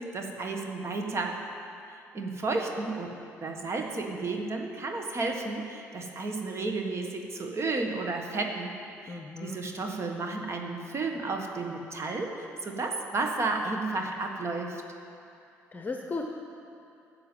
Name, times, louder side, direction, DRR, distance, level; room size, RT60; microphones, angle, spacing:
voice 1, 0.0-1.4 2.1-3.1 3.4-8.7 9.0-14.8, right 3 dB, 45° right, 2 dB, 1.5 m, -32 dB
voice 2, 9.1-9.6 15.7-16.3, left 3 dB, 30° left, 3 dB, 0.9 m, -35 dB
10.5 x 6.9 x 9.1 m, 2.6 s
supercardioid pair, 70°, 6 cm